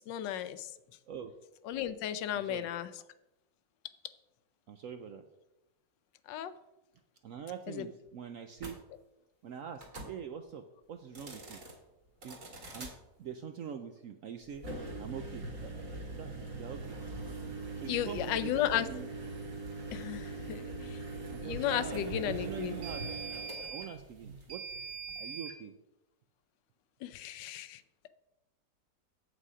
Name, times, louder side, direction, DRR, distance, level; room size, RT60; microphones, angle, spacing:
voice 1, 0.1-0.7 1.6-2.9 6.3-6.5 7.7-7.9 17.9-18.9 19.9-21.0 21.4-22.8 27.0-27.8, left 11 dB, 80° left, 13 dB, 1.3 m, -34 dB
voice 2, 2.3-2.7 4.7-5.3 7.2-8.8 9.4-11.6 12.2-12.4 12.7-12.9 13.2-14.7 15.0-15.8 16.1-17.0 17.8-19.1 21.3-23.1 23.7-24.7 25.2-25.8, right 8 dB, 70° right, 7 dB, 0.8 m, -44 dB
sound 1, 8.6-8.7 9.8-10.1 11.0-11.7 12.2-12.9 14.5-25.6, right 3 dB, 45° right, 2.2 m, -41 dB
8.2 x 7.8 x 4.8 m, 0.94 s
omnidirectional pair, 1.9 m